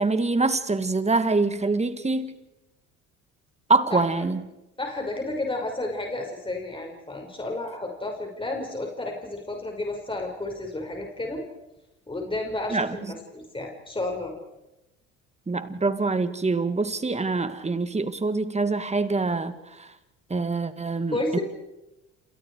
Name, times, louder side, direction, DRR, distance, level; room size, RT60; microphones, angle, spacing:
voice 1, 0.0-2.3 3.7-4.4 12.7-13.0 15.5-19.9 20.3-21.4, right 3 dB, 20° right, 10 dB, 2.4 m, -25 dB
voice 2, 3.9-4.2 4.8-11.4 12.1-14.3 21.1-21.4, left 2 dB, 15° left, 2 dB, 5.8 m, -31 dB
28.5 x 28.5 x 4.9 m, 0.96 s
hypercardioid pair, 70°, 35 cm